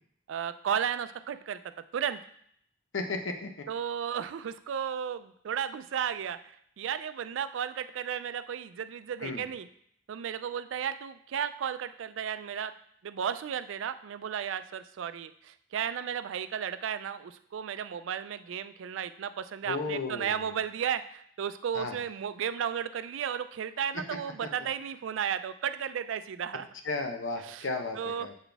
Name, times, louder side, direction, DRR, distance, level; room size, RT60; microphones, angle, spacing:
voice 1, 0.3-1.6 1.9-2.2 3.7-6.4 6.8-9.7 10.1-12.7 13.0-26.7 27.4-27.7 28.0-28.3, right 8 dB, 85° right, 12 dB, 0.3 m, -34 dB
voice 2, 2.9-3.5 9.2-9.5 19.6-20.5 21.7-22.0 26.8-28.3, left 3 dB, 85° left, 5 dB, 0.7 m, -34 dB
7.2 x 4.0 x 3.4 m, 0.67 s
head